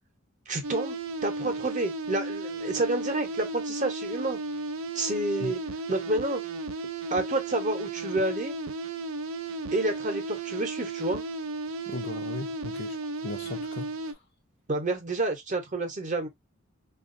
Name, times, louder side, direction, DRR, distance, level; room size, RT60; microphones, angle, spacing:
voice 1, 0.5-4.4 4.9-5.6 5.9-6.4 7.1-8.5 9.7-11.2 14.7-16.3, right 2 dB, 35° right, 0.7 m, -29 dB
sound 1, 0.6-14.1, right 2 dB, 80° right, 0.5 m, -34 dB
voice 2, 11.9-14.2, left 4 dB, 55° left, 0.5 m, -38 dB
3.5 x 2.3 x 2.5 m
head